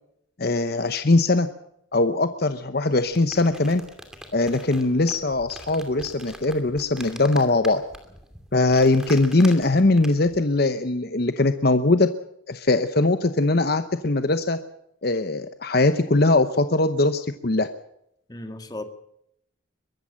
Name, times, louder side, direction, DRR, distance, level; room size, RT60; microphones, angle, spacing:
voice 1, 0.4-1.5 1.9-3.8 4.3-7.8 8.5-12.1 12.5-14.6 15.0-17.7, left 2 dB, 50° left, 10 dB, 0.9 m, -21 dB
sound 1, 2.9-10.4, equal, 5° right, 2.6 m, -43 dB
voice 2, 18.3-18.8, left 1 dB, 20° left, 8 dB, 1.7 m, -35 dB
23.0 x 14.0 x 8.7 m, 0.76 s
head